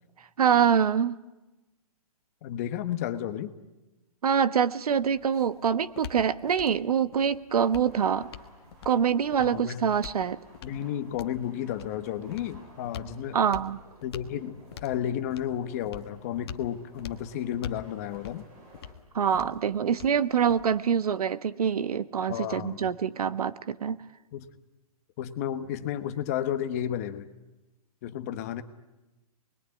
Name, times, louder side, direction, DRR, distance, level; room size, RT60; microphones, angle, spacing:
voice 1, 0.4-1.2 4.2-8.3 8.8-10.4 13.3-13.8 19.1-24.0, right 7 dB, 80° right, 14 dB, 1.3 m, -25 dB
voice 2, 2.4-3.5 9.4-9.8 10.6-13.4 14.0-18.4 22.3-22.9 24.3-24.5 25.2-27.3 28.0-28.6, left 10 dB, 25° left, 10 dB, 1.1 m, -32 dB
sound 1, 4.9-20.9, left 8 dB, 40° left, 1.3 m, -46 dB
sound 2, 7.6-18.9, right 2 dB, 30° right, 5.4 m, -55 dB
28.0 x 21.5 x 9.8 m, 1.1 s
hypercardioid pair, 170°, 19 cm